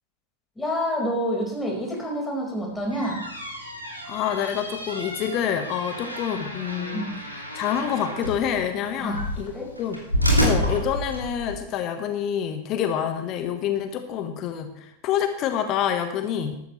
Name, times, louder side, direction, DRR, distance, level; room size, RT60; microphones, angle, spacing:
voice 1, 0.6-3.2 6.9-7.2 9.0-9.3 9.5-9.6, equal, 10° left, -1 dB, 5.0 m, -28 dB
sound 1, 2.7-11.6, equal, 90° right, 2.9 m, -29 dB
voice 2, 4.0-7.1 7.3-10.0 10.4-16.6, left 9 dB, 35° left, 7 dB, 1.4 m, -27 dB
14.0 x 13.5 x 3.3 m, 0.76 s
figure-of-eight pair, 90°, 0 cm